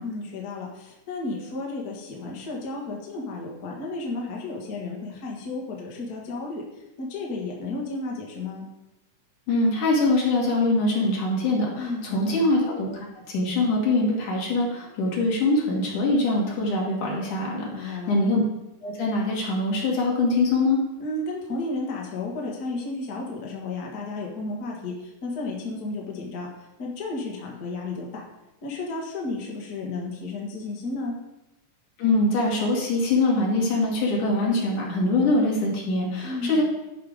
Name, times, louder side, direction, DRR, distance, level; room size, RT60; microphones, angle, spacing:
voice 1, 0.0-8.7 11.7-12.4 17.7-18.2 21.0-28.1 28.6-31.2 36.2-36.6, left 2 dB, 35° left, -2 dB, 1.8 m, -33 dB
voice 2, 9.5-12.9 13.3-18.4 18.8-20.8 32.0-36.6, left 2 dB, 75° left, -3 dB, 3.7 m, -23 dB
11.5 x 5.9 x 5.1 m, 0.95 s
omnidirectional pair, 3.6 m